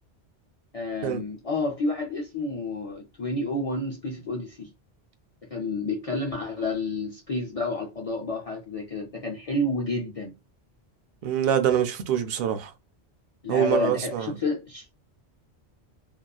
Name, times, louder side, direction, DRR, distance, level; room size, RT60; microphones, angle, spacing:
voice 1, 0.7-4.7 5.5-10.3 13.4-14.9, left 2 dB, 55° left, 0.4 m, -30 dB
voice 2, 11.2-12.7 13.5-14.3, right 10 dB, 65° right, 0.7 m, -25 dB
2.7 x 2.3 x 2.2 m
omnidirectional pair, 1.1 m